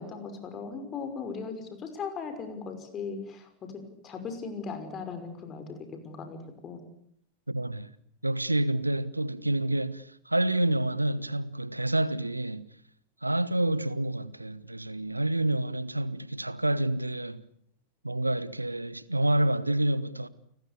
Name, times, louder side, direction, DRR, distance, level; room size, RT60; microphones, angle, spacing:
voice 1, 0.0-6.8, left 5 dB, 25° left, 5.7 m, -38 dB
voice 2, 7.5-7.9 8.2-12.7 13.2-17.4 18.0-20.3, right 1 dB, 85° right, 1.2 m, -28 dB
30.0 x 19.5 x 8.5 m
figure-of-eight pair, 90°, 0 cm